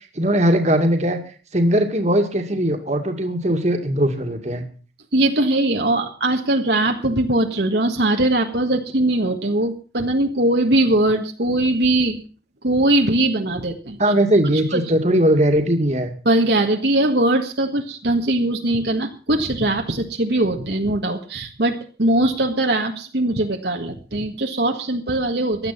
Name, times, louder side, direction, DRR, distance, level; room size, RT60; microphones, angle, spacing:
voice 1, 0.2-1.2 1.5-4.6 14.0-16.1, right 1 dB, 40° right, 5 dB, 2.2 m, -19 dB
voice 2, 5.1-12.2 12.6-14.0 14.7-14.8 16.2-25.7, right 1 dB, 65° right, 3 dB, 1.7 m, -20 dB
16.5 x 11.5 x 5.8 m, 0.39 s
head